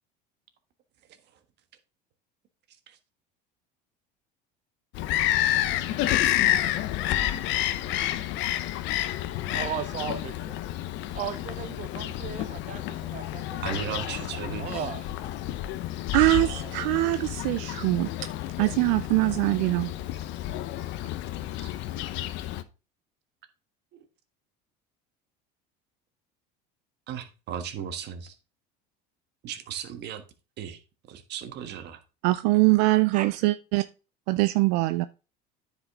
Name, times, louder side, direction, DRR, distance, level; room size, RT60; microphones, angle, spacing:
Bird vocalization bird call bird song, 4.9-22.6, left 13 dB, 60° left, 0.8 m, -30 dB
voice 1, 9.5-10.5 11.1-14.0 14.3-15.1 16.2-17.2 33.1-33.3, right 9 dB, 35° right, 0.7 m, -37 dB
voice 2, 13.6-14.9 21.5-21.7 23.9-24.0 27.1-28.4 29.4-30.2 30.6-30.8 31.1-32.0, right 9 dB, 55° right, 1.5 m, -36 dB
voice 3, 16.1-18.1 18.6-19.9 32.2-33.8 34.3-35.1, right 20 dB, 75° right, 0.5 m, -23 dB
9.7 x 5.2 x 3.7 m
supercardioid pair, 105°, 21 cm